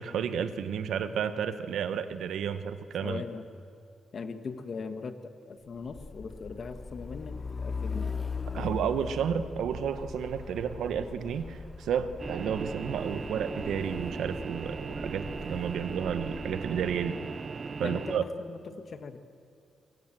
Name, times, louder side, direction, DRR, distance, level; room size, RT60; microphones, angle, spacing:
voice 1, 0.0-3.2 8.5-17.2 17.8-18.2, right 7 dB, 85° right, 11 dB, 1.2 m, -31 dB
voice 2, 3.0-3.5 4.1-8.1 8.5-8.7 17.8-19.2, left 5 dB, 50° left, 8 dB, 1.6 m, -40 dB
Truck, 5.8-17.2, left 4 dB, 25° left, 0.7 m, -40 dB
sound 1, 12.2-18.2, right 4 dB, 40° right, 0.7 m, -38 dB
24.0 x 23.0 x 7.6 m, 2.4 s
cardioid pair, 110°, 0 cm